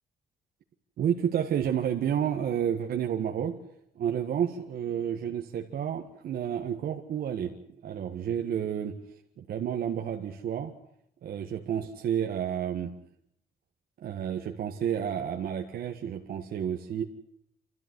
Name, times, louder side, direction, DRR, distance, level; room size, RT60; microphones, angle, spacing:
voice 1, 1.0-3.6 4.0-7.5 7.8-8.9 9.4-10.7 11.2-12.9 14.0-17.0, right 9 dB, 75° right, 2 dB, 1.8 m, -30 dB
28.0 x 13.5 x 9.7 m, 0.74 s
cardioid pair, 135°, 15 cm